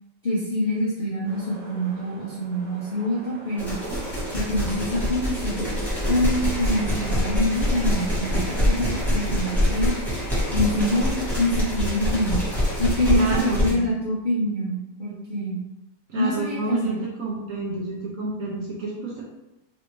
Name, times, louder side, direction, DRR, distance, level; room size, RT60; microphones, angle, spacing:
voice 1, 0.2-3.7 4.3-5.7 6.1-10.0 10.5-12.4 12.8-15.6 16.2-17.0, left 1 dB, 55° left, -9 dB, 0.5 m, -25 dB
sound 1, 1.2-13.8, right 2 dB, 90° right, 1.4 m, -44 dB
sound 2, 3.6-13.7, left 1 dB, ahead, 1.0 m, -25 dB
voice 2, 13.2-13.9 16.1-19.2, right 3 dB, 70° right, -3 dB, 0.8 m, -29 dB
3.3 x 2.6 x 3.0 m, 0.95 s
omnidirectional pair, 1.8 m